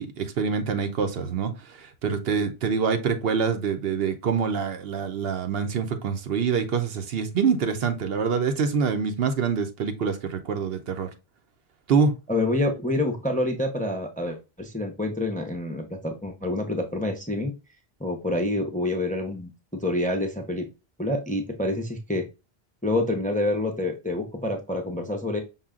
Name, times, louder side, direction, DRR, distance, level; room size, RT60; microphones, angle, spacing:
voice 1, 0.0-11.1 11.9-12.2, right 6 dB, 70° right, 0.9 m, -25 dB
voice 2, 12.3-17.5 18.0-20.7 21.0-22.2 22.8-25.4, left 1 dB, 10° left, 0.5 m, -27 dB
5.6 x 2.2 x 3.6 m
omnidirectional pair, 1.1 m